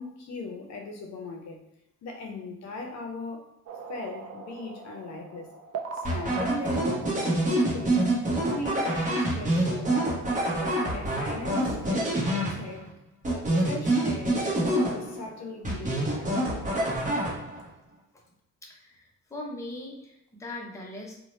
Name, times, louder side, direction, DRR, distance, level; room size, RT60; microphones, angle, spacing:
voice 1, 0.0-1.6 2.0-3.5 3.9-5.5 5.9-8.1 8.5-10.2 10.5-12.9 13.3-16.3, left 2 dB, 65° left, 2 dB, 0.6 m, -39 dB
sound 1, 3.7-9.0, right 5 dB, 55° right, 0.4 m, -41 dB
sound 2, 6.1-12.9 13.2-15.3 15.7-17.7, right 1 dB, 25° right, 0.9 m, -26 dB
voice 2, 18.6-21.2, left 1 dB, 10° left, -2 dB, 0.6 m, -40 dB
2.7 x 2.1 x 3.1 m, 0.82 s
cardioid pair, 90°, 30 cm